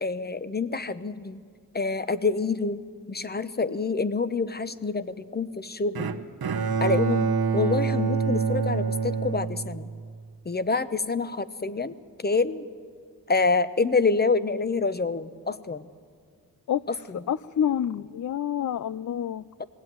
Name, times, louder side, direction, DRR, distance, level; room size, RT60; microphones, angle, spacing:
voice 1, 0.0-1.4 1.7-2.8 3.1-6.1 6.8-9.9 10.4-11.9 12.2-12.7 13.3-15.9 17.1-17.2 19.6-19.7, left 4 dB, 25° left, 14 dB, 0.9 m, -27 dB
Bowed string instrument, 5.9-10.2, right 5 dB, 75° right, 1.2 m, -26 dB
voice 2, 16.7-17.0 17.3-19.4, left 9 dB, 55° left, 16 dB, 0.5 m, -28 dB
20.0 x 16.5 x 9.4 m, 2.1 s
wide cardioid pair, 70°, 37 cm